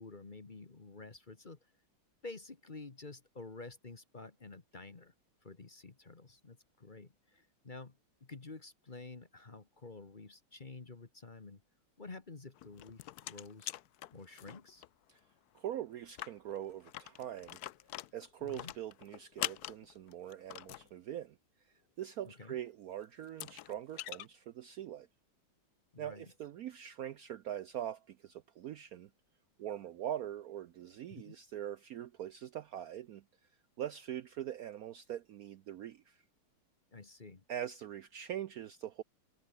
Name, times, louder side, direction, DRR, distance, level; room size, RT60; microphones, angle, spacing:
voice 1, 0.0-1.7 2.2-5.1 5.4-11.6 12.0-13.7 14.1-14.8 18.4-18.7 22.2-22.6 25.9-26.3 31.1-31.4 36.9-37.4, left 3 dB, 25° left, 1.3 m, -50 dB
sound 1, 12.6-14.9 15.2-15.3 15.6-15.7 16.0-20.9 22.7-22.8 23.2-24.3, left 14 dB, 75° left, 0.9 m, -44 dB
voice 2, 15.5-17.6 18.1-21.4 22.0-25.1 26.0-29.1 29.6-33.2 33.8-36.2 37.5-39.0, right 11 dB, 90° right, 0.7 m, -42 dB
omnidirectional pair, 2.3 m